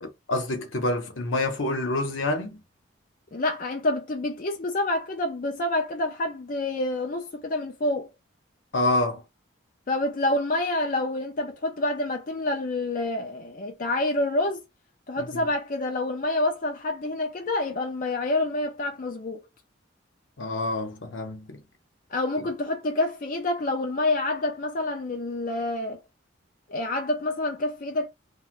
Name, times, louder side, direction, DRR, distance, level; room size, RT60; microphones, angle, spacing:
voice 1, 0.0-2.6 8.7-9.2 15.2-15.4 20.4-21.6, left 2 dB, 80° left, 0.9 m, -27 dB
voice 2, 3.3-8.1 9.9-14.6 15.1-19.5 22.1-26.0 26.7-28.1, left 2 dB, 45° left, 0.4 m, -27 dB
2.5 x 2.2 x 3.2 m
head